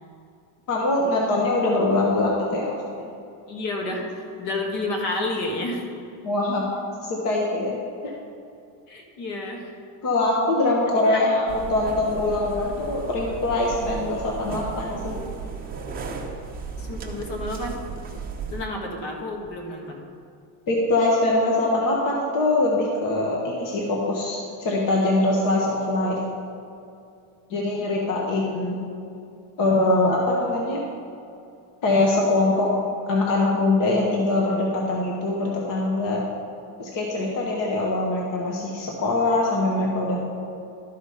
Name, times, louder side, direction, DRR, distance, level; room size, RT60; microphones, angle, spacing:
voice 1, 0.7-3.1 6.2-6.6 7.0-7.8 8.0-8.1 10.0-15.2 20.7-26.2 27.5-28.8 29.6-30.8 31.8-32.7 33.1-36.2 36.8-40.2, left 2 dB, 45° left, -2 dB, 1.2 m, -23 dB
voice 2, 3.5-5.8 8.9-9.7 10.9-11.2 16.8-17.8 18.5-20.1, left 2 dB, 60° left, 1 dB, 1.6 m, -30 dB
sound 1, 11.5-18.6, right 5 dB, 20° right, 0.7 m, -35 dB
12.5 x 5.0 x 5.5 m, 2.6 s
cardioid pair, 170°, 46 cm